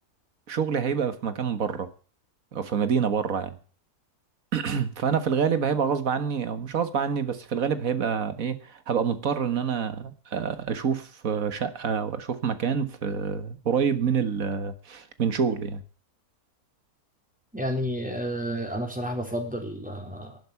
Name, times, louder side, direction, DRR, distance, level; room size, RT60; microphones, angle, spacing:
voice 1, 0.5-1.9 2.5-3.6 4.5-15.8, right 7 dB, 60° right, 1.8 m, -27 dB
voice 2, 17.5-20.4, equal, 5° right, 3.6 m, -31 dB
12.0 x 10.5 x 8.3 m
omnidirectional pair, 1.6 m